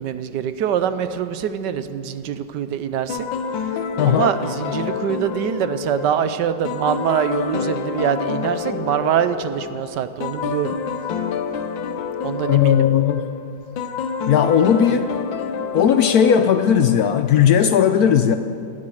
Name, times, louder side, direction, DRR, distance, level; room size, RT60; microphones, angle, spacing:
voice 1, 0.0-3.2 4.0-10.8 12.2-12.8, right 8 dB, 70° right, 11 dB, 1.2 m, -24 dB
sound 1, 3.1-17.3, left 6 dB, 85° left, 1.5 m, -28 dB
voice 2, 4.0-4.3 12.5-13.3 14.3-15.1 15.7-18.3, left 8 dB, 70° left, 9 dB, 0.9 m, -16 dB
19.0 x 11.5 x 6.4 m, 2.5 s
omnidirectional pair, 2.0 m